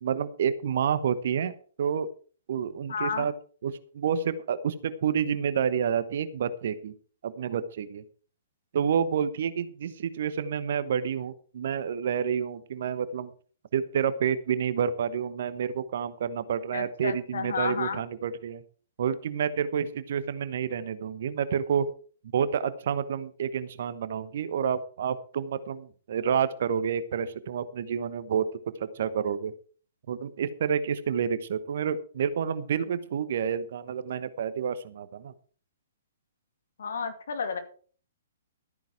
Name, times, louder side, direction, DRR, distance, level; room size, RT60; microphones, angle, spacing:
voice 1, 0.0-1.5 1.8-2.1 2.5-3.3 3.6-6.9 7.2-8.0 8.7-13.3 13.7-18.6 19.0-21.9 22.3-28.5 28.8-29.5 30.1-35.3, right 7 dB, 55° right, 14 dB, 1.1 m, -29 dB
voice 2, 2.9-3.3 16.7-18.0 36.8-37.6, left 5 dB, 65° left, 8 dB, 2.3 m, -31 dB
13.5 x 9.3 x 4.7 m, 0.42 s
figure-of-eight pair, 120°, 0 cm